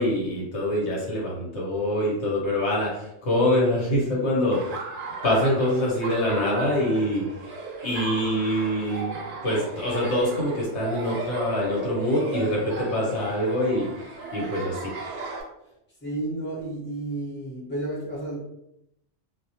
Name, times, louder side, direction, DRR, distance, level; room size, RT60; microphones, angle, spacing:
voice 1, 0.0-4.7 5.2-7.2 7.8-9.2 9.4-13.9 14.3-14.8, left 1 dB, 75° left, -3 dB, 1.0 m, -25 dB
Laughter, 4.5-15.4, right 3 dB, 60° right, 0.6 m, -35 dB
voice 2, 16.0-18.4, right 2 dB, 10° left, -8 dB, 0.8 m, -31 dB
2.2 x 2.1 x 2.7 m, 0.81 s
omnidirectional pair, 1.2 m